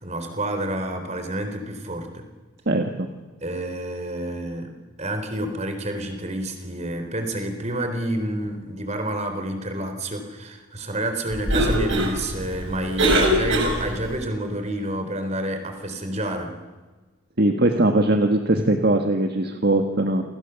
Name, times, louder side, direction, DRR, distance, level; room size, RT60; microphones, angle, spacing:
voice 1, 0.0-2.3 3.4-16.6, right 1 dB, 30° right, 7 dB, 3.8 m, -29 dB
Cough, 11.3-14.2, right 1 dB, 65° right, 6.4 m, -23 dB
voice 2, 17.4-20.2, right 1 dB, 50° right, 5 dB, 1.7 m, -20 dB
29.5 x 25.0 x 7.1 m, 1.3 s
head